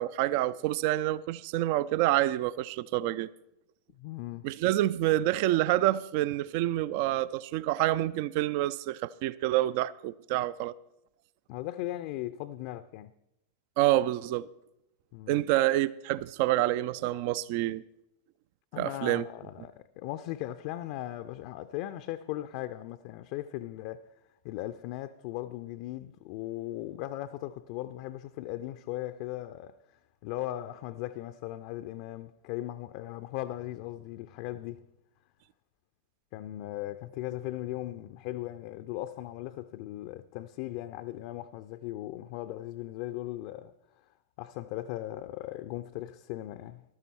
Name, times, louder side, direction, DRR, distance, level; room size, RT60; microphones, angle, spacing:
voice 1, 0.0-3.3 4.4-10.7 13.8-14.5 15.3-17.8 18.8-19.2, right 15 dB, 45° right, 0.4 m, -27 dB
voice 2, 4.0-4.5 11.5-13.1 15.1-15.4 18.7-24.1 24.4-34.8 36.3-43.7 44.4-46.8, left 15 dB, 45° left, 0.5 m, -38 dB
14.5 x 12.5 x 4.5 m
figure-of-eight pair, 90°, 0 cm